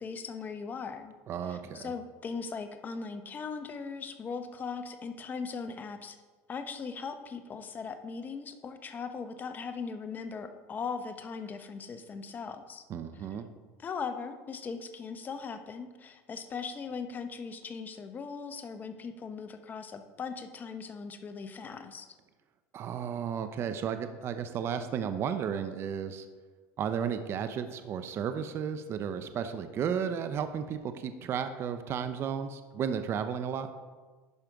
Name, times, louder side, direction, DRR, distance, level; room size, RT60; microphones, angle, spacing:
voice 1, 0.0-1.1 1.4-6.2 6.5-12.8 13.8-22.1, left 5 dB, 25° left, 8 dB, 0.8 m, -39 dB
voice 2, 1.3-1.9 12.9-13.5 22.7-26.3 26.8-33.7, right 7 dB, 40° right, 10 dB, 0.6 m, -33 dB
11.0 x 5.1 x 4.6 m, 1.4 s
supercardioid pair, 120°, 7 cm